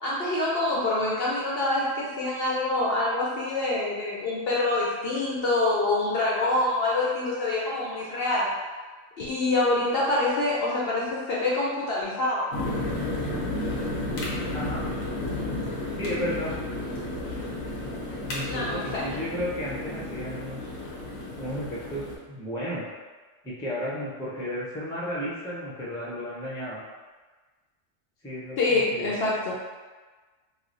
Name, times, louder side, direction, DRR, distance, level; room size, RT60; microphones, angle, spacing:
voice 1, 0.0-8.5 9.2-12.5 18.5-19.1 28.6-29.5, left 2 dB, 60° left, -5 dB, 0.7 m, -26 dB
sound 1, 12.5-22.2, left 1 dB, 90° left, 1.2 m, -32 dB
voice 2, 16.0-16.5 18.2-20.6 21.4-22.8 23.4-26.8 28.2-28.6 28.9-29.1, equal, 5° left, -7 dB, 0.4 m, -33 dB
3.1 x 2.0 x 3.8 m, 1.3 s
omnidirectional pair, 1.3 m